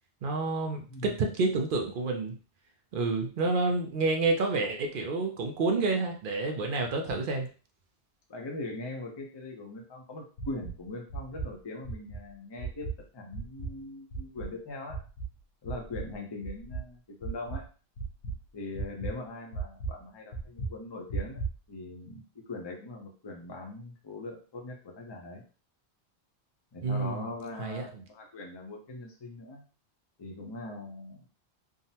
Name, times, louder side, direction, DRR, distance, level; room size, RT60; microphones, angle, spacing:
voice 1, 0.2-2.4 2.9-7.5 26.8-27.3 27.6-28.0, right 3 dB, 60° right, 4 dB, 0.6 m, -29 dB
voice 2, 8.3-12.9 13.1-15.0 15.6-17.6 18.5-21.4 21.7-25.4 26.7-29.6 30.2-31.2, left 2 dB, 30° left, 1 dB, 0.6 m, -41 dB
sound 1, 10.4-10.8 11.1-11.5 11.8-12.2 12.6-13.0 13.3-13.8 14.1-14.5 14.9-15.3 15.7-16.1 16.4-16.8 17.2-17.7 18.0-18.4 18.7-19.1 19.5-19.9 20.3-20.7 21.1-21.6, right 4 dB, 85° left, 1.0 m, -35 dB
3.6 x 2.1 x 2.7 m, 0.36 s
omnidirectional pair, 1.1 m